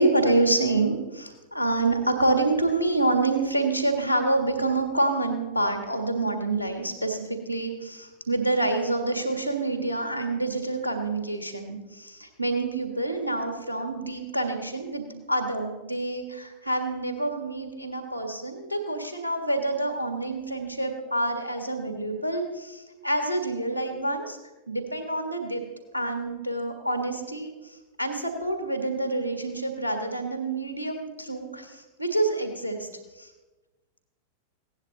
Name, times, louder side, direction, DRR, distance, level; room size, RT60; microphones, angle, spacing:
voice 1, 0.0-24.4 24.7-25.6 25.9-32.9 33.2-33.3, right 2 dB, 90° right, 6 dB, 1.6 m, -27 dB
16.5 x 10.5 x 3.9 m, 1.2 s
figure-of-eight pair, 90°, 0 cm